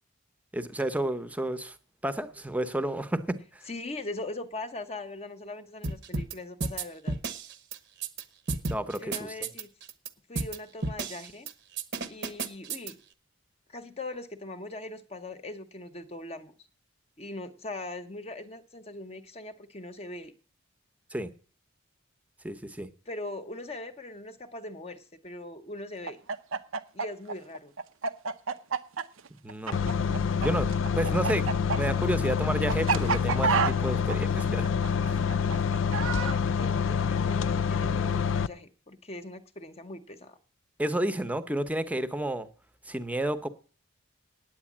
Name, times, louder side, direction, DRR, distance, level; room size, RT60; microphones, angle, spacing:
voice 1, 0.5-1.7 2.0-3.4 8.7-9.3 21.1-21.3 22.4-22.9 29.4-30.7 30.9-31.4 31.7-34.6 35.1-35.2 40.8-42.5 42.9-43.5, right 1 dB, 5° right, 13 dB, 0.8 m, -31 dB
voice 2, 3.6-7.2 9.0-9.7 10.3-11.5 12.1-13.0 13.7-16.5 17.2-20.3 23.1-26.2 26.9-27.7 35.7-40.4, left 2 dB, 30° left, 7 dB, 0.8 m, -40 dB
sound 1, 5.8-6.3 6.6-8.2 8.5-10.1 10.3-10.6 10.8-11.5 11.8-12.9, right 3 dB, 55° right, 1.0 m, -32 dB
Chicken rooster, 26.0-30.5 30.7-36.4, right 5 dB, 75° right, 0.7 m, -29 dB
sound 2, 29.7-38.5, left 6 dB, 65° left, 0.4 m, -27 dB
9.3 x 8.8 x 7.3 m, 0.42 s
head